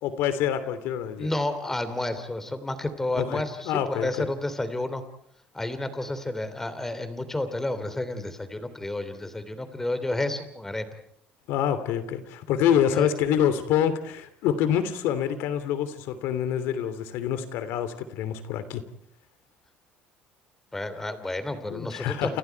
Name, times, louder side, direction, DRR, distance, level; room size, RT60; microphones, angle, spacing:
voice 1, 0.0-1.3 3.1-4.2 11.5-18.8 21.7-22.4, left 9 dB, 80° left, 11 dB, 2.9 m, -26 dB
voice 2, 1.2-5.0 5.5-10.9 12.9-13.1 20.7-22.4, left 2 dB, 10° left, 10 dB, 3.0 m, -31 dB
29.5 x 28.5 x 4.7 m, 0.69 s
cardioid pair, 135°, 4 cm